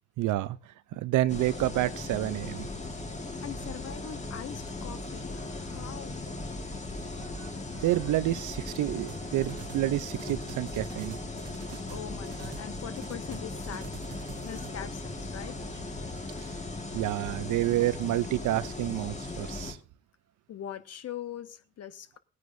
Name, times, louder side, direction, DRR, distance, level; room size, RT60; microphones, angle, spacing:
voice 1, 0.2-0.6 0.9-2.7 7.4-7.5 7.8-11.3 16.9-19.8, right 15 dB, 80° right, 0.6 m, -29 dB
sound 1, 1.3-19.7, left 2 dB, 25° left, 1.7 m, -38 dB
voice 2, 3.4-6.2 11.9-15.6 20.5-22.2, left 10 dB, 55° left, 1.0 m, -42 dB
sound 2, 9.1-9.9 10.1-12.7 13.0-14.7, right 7 dB, 55° right, 1.1 m, -47 dB
18.0 x 9.6 x 2.6 m
cardioid pair, 90°, 30 cm